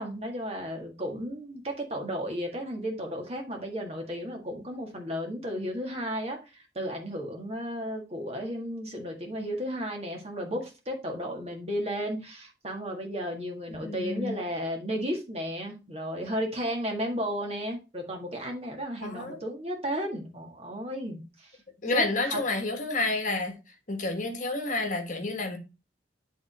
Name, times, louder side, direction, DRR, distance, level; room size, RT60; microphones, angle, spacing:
voice 1, 0.0-21.5 21.9-22.4, equal, 35° right, 1.8 m, -34 dB
voice 2, 13.8-14.4 19.0-19.4 21.8-23.5 23.9-25.6, left 2 dB, 45° left, 1.3 m, -29 dB
9.9 x 3.7 x 4.2 m
head